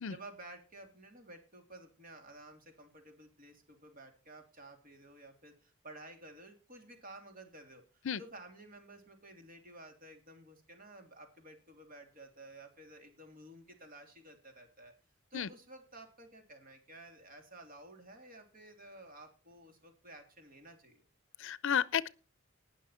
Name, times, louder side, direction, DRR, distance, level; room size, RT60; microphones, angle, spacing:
voice 1, 0.1-14.9 15.3-21.0, right 2 dB, 45° right, 3.0 m, -53 dB
voice 2, 21.4-22.1, left 8 dB, 65° left, 0.6 m, -32 dB
19.0 x 6.4 x 4.4 m
head